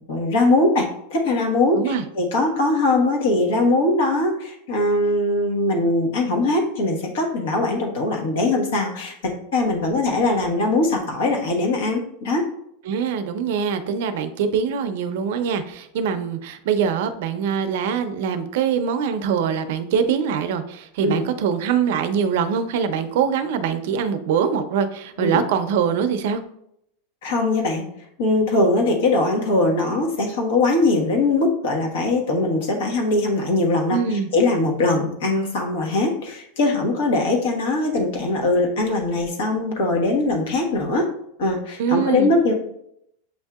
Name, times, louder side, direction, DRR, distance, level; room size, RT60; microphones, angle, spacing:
voice 1, 0.1-12.4 21.0-21.2 25.2-25.4 27.2-27.8 28.2-41.1 41.4-42.5, left 2 dB, 70° left, 1 dB, 1.2 m, -21 dB
voice 2, 12.8-26.4 33.9-34.3 41.8-42.3, right 7 dB, 60° right, 9 dB, 0.5 m, -23 dB
7.9 x 2.7 x 2.3 m, 0.75 s
supercardioid pair, 170°, 0 cm